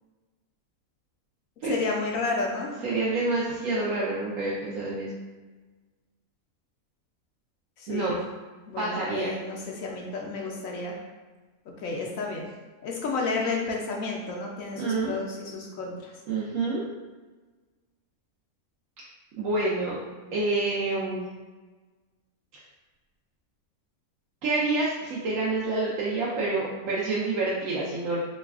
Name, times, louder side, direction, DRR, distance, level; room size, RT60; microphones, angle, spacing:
voice 1, 1.6-2.8 7.8-8.2 8.7-11.0 11.8-12.5 12.8-16.1, left 3 dB, 70° left, -1 dB, 0.9 m, -31 dB
voice 2, 2.8-5.1 7.9-8.2 8.8-9.3 14.8-15.2 16.3-16.9 19.4-20.0 20.3-21.2 24.4-28.2, right 3 dB, 70° right, -6 dB, 0.9 m, -27 dB
3.1 x 2.2 x 3.5 m, 1.3 s
omnidirectional pair, 1.6 m